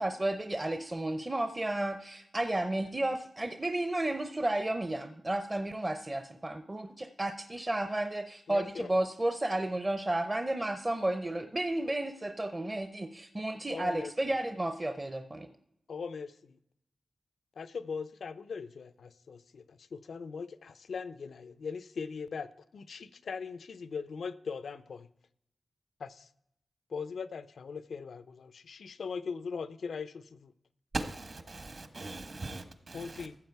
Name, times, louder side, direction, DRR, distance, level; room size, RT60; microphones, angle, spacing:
voice 1, 0.0-15.5, right 1 dB, 25° right, 0.6 m, -32 dB
voice 2, 8.5-9.1 13.7-14.1 15.9-16.6 17.6-25.1 26.0-26.3 26.9-30.5 32.9-33.4, left 5 dB, 90° left, 0.5 m, -40 dB
voice 3, 30.9-33.3, right 2 dB, 50° right, 1.4 m, -39 dB
14.5 x 7.4 x 4.6 m
wide cardioid pair, 110°, 0 cm